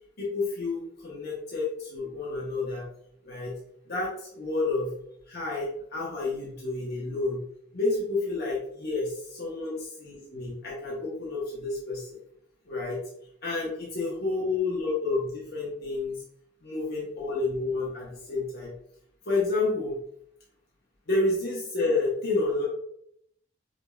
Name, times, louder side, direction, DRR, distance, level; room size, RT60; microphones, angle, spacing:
voice 1, 0.2-2.9 3.2-3.6 3.9-4.9 5.3-7.4 7.7-12.1 12.7-13.0 13.4-16.2 16.6-18.7 19.2-19.9 21.1-22.6, left 3 dB, 55° left, -5 dB, 1.0 m, -30 dB
5.1 x 2.8 x 2.3 m, 0.71 s
head